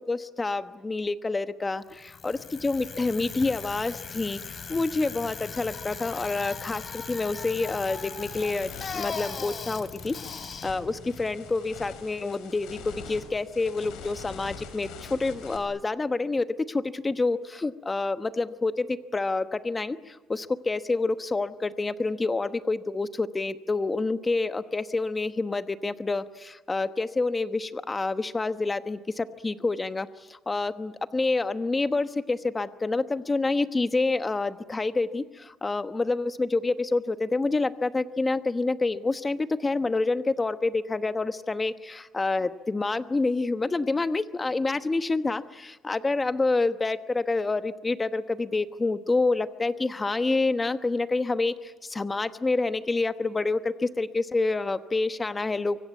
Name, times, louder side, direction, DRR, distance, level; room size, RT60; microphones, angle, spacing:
voice 1, 0.1-4.4 4.7-30.1 30.5-55.8, left 3 dB, 20° left, 11 dB, 1.1 m, -28 dB
Bicycle, 1.9-12.0, left 5 dB, 35° left, 3.1 m, -39 dB
sound 1, 8.0-15.6, left 6 dB, 85° left, 5.7 m, -45 dB
25.0 x 24.5 x 9.4 m, 1.2 s
cardioid pair, 130°, 0 cm